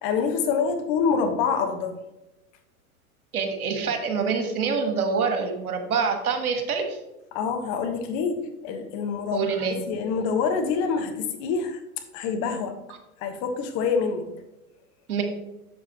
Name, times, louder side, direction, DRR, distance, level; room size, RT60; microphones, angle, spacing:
voice 1, 0.0-2.0 7.3-9.4 9.9-11.8 12.1-12.8 13.2-14.3, left 5 dB, 45° left, 6 dB, 1.5 m, -26 dB
voice 2, 3.3-7.0 9.3-9.8 15.1-15.2, right 5 dB, 80° right, 6 dB, 1.6 m, -26 dB
7.9 x 7.1 x 3.1 m, 0.94 s
hypercardioid pair, 100°, 44 cm